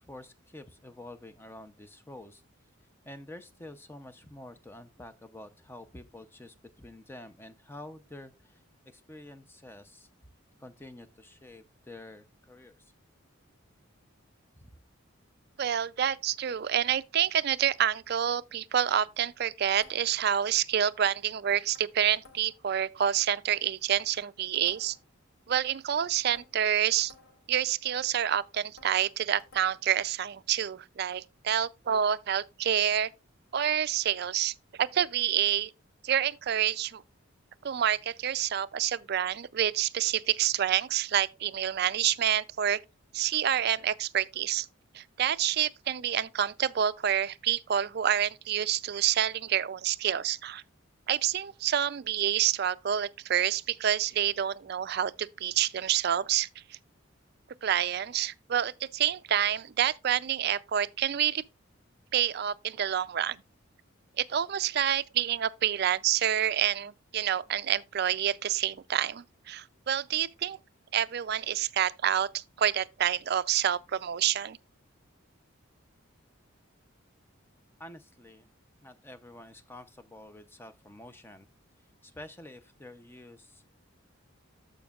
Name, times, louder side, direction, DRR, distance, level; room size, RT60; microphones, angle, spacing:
voice 1, 0.0-2.4 3.1-10.1 10.6-12.9 14.6-14.8 77.8-78.5 78.8-81.5 82.0-83.6, left 1 dB, 10° left, 0.5 m, -48 dB
voice 2, 15.6-25.0 25.5-27.1 27.5-33.1 33.5-35.7 36.0-37.0 37.6-42.8 43.1-44.7 44.9-50.6 51.1-56.8 57.6-61.4 62.1-63.4 64.2-70.6 70.9-74.6, right 10 dB, 50° right, 0.4 m, -28 dB
sound 1, 19.7-20.3 21.5-22.7 23.9-25.1 26.3-27.6 28.8-30.0, left 3 dB, 90° left, 2.1 m, -57 dB
14.0 x 5.2 x 2.4 m
head